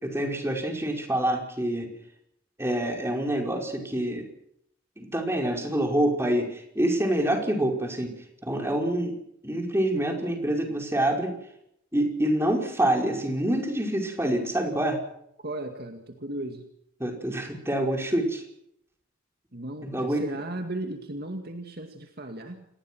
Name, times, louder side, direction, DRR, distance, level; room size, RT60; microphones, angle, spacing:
voice 1, 0.0-1.9 2.6-4.3 5.0-8.2 8.4-9.2 9.4-11.3 11.9-15.0 17.0-18.4 19.8-20.2, right 1 dB, 10° right, 2 dB, 5.2 m, -26 dB
voice 2, 15.4-16.7 19.5-22.7, right 1 dB, 50° right, 5 dB, 2.3 m, -36 dB
28.5 x 19.5 x 6.3 m, 0.74 s
head